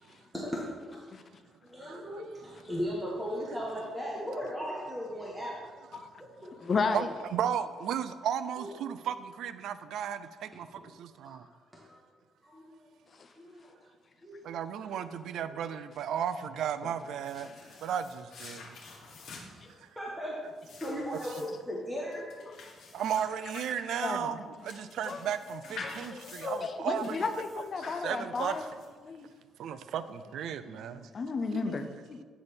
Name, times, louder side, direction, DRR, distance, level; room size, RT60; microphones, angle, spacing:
voice 1, 0.3-1.0 1.7-5.6 6.2-6.5 8.6-8.7 10.7-10.8 11.2-11.4 11.7-12.0 12.4-12.7 13.4-13.7 14.2-14.4 14.8-14.9 15.4-15.5 19.5-19.6 19.9-20.4 20.8-22.2, equal, 5° right, 1.4 m, -37 dB
voice 2, 1.9-2.2 6.0-6.1 6.8-11.5 14.4-17.5 17.8-18.8 22.9-27.4 27.9-28.6 29.6-31.1 31.5-31.9, right 9 dB, 75° right, 0.4 m, -35 dB
voice 3, 6.6-7.1 13.2-13.3 17.4-17.5 19.3-19.4 22.5-22.6 23.5-23.6 23.9-24.3 24.8-25.2 25.8-28.6 29.0-29.3 30.7-32.2, left 4 dB, 45° left, 0.6 m, -34 dB
sound 1, 17.0-29.2, left 4 dB, 70° left, 1.6 m, -48 dB
8.9 x 4.0 x 5.2 m
cardioid pair, 90°, 0 cm